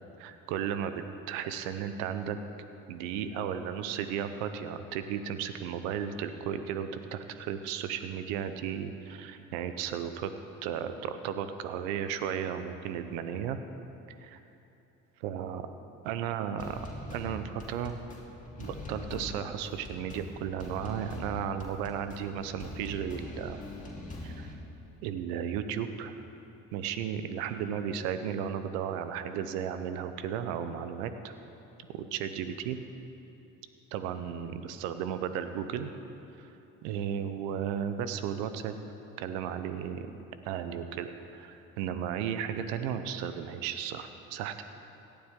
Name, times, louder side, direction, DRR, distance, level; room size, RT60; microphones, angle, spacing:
voice 1, 0.2-2.4 2.9-10.3 10.6-13.6 14.2-14.4 15.2-15.7 16.0-16.8 17.1-18.0 18.6-23.6 24.2-24.5 25.0-26.2 26.7-31.3 31.9-32.8 33.9-35.9 36.4-36.5 36.8-38.8 39.2-40.2 40.4-44.6, right 8 dB, 85° right, 10 dB, 0.8 m, -34 dB
sound 1, 16.6-24.5, left 1 dB, 20° left, 3.1 m, -42 dB
17.5 x 12.0 x 3.7 m, 2.9 s
hypercardioid pair, 65°, 38 cm